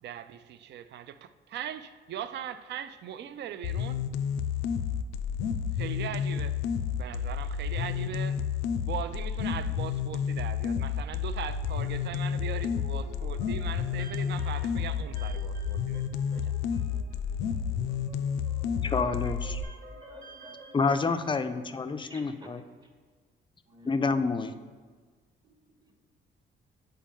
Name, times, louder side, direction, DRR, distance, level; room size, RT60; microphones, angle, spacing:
voice 1, 0.0-4.1 5.7-6.6 6.9-8.4 8.8-16.5, right 9 dB, 60° right, 13 dB, 0.4 m, -40 dB
sound 1, 3.6-19.6, left 7 dB, 90° left, 0.4 m, -31 dB
sound 2, 11.4-20.9, right 1 dB, 90° right, 1.4 m, -51 dB
voice 2, 18.8-19.6 20.7-22.6 23.8-24.5, left 4 dB, 25° left, 9 dB, 0.4 m, -28 dB
voice 3, 19.9-20.8 22.0-22.5 23.7-23.9 25.4-25.6 25.8-26.1, right 1 dB, 20° right, 4 dB, 0.9 m, -52 dB
7.5 x 4.4 x 3.6 m, 1.5 s
cardioid pair, 90°, 20 cm